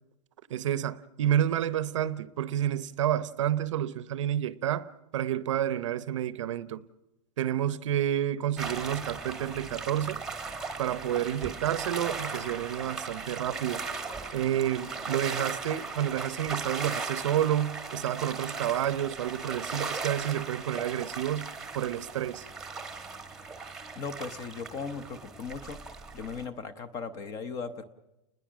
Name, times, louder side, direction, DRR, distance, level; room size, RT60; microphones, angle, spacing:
voice 1, 0.5-6.9 7.4-10.2 10.8-13.9 14.3-22.5, right 11 dB, 50° right, 0.9 m, -30 dB
sound 1, 8.6-26.5, right 4 dB, ahead, 1.2 m, -38 dB
voice 2, 24.0-25.8 26.1-27.8, left 5 dB, 15° left, 0.8 m, -37 dB
30.0 x 20.5 x 6.2 m
hypercardioid pair, 170°, 21 cm